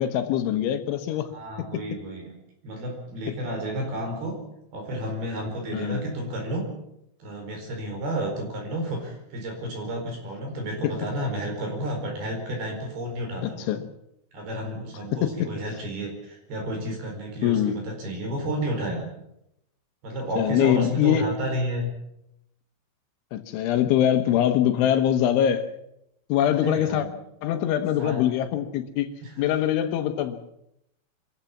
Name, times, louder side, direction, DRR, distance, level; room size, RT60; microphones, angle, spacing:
voice 1, 0.0-1.3 1.6-1.8 5.7-6.0 10.8-10.9 13.4-13.8 15.1-15.5 17.4-17.8 20.4-21.3 23.3-25.7 26.3-27.1 27.4-29.1 29.4-30.4, left 10 dB, 80° left, 8 dB, 3.6 m, -23 dB
voice 2, 1.3-2.3 2.6-4.4 4.7-6.7 7.2-13.7 14.3-19.0 20.0-21.9 26.5-27.1 28.0-28.2 29.2-29.3, right 1 dB, 55° right, 2 dB, 6.4 m, -31 dB
25.0 x 15.0 x 7.3 m, 0.80 s
omnidirectional pair, 5.4 m